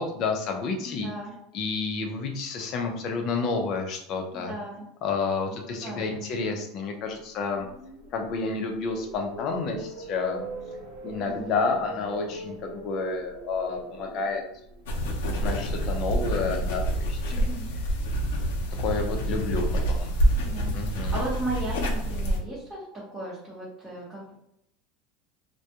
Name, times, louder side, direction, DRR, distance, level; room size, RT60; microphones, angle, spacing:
voice 1, 0.0-1.1 1.5-4.5 5.0-7.7 8.1-10.4 11.0-14.4 15.2-17.5 18.8-20.1 20.7-21.1, left 4 dB, 40° left, 2 dB, 0.5 m, -30 dB
voice 2, 0.8-1.3 4.3-4.8 5.7-6.2 11.2-11.6 17.3-17.7 20.4-22.8 23.1-24.3, right 2 dB, 5° right, -9 dB, 0.8 m, -36 dB
sound 1, 7.2-17.3, right 1 dB, 65° right, 0.8 m, -43 dB
sound 2, 14.9-22.4, right 1 dB, 90° left, 0.5 m, -27 dB
2.3 x 2.2 x 2.8 m, 0.77 s
supercardioid pair, 150°, 0 cm